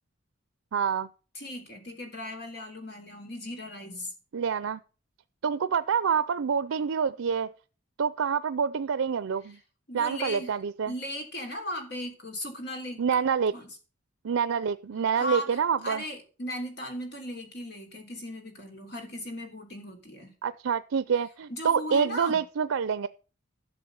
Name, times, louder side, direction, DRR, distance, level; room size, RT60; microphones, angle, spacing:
voice 1, 0.7-1.1 4.3-4.8 5.4-7.5 8.0-9.6 9.9-10.9 13.0-13.5 14.2-16.0 20.4-23.1, right 6 dB, 85° right, 0.5 m, -27 dB
voice 2, 1.4-4.1 9.9-10.5 10.9-13.0 13.5-13.7 15.1-20.3 21.5-22.4, left 1 dB, 55° left, 3.5 m, -37 dB
12.5 x 6.9 x 6.9 m
head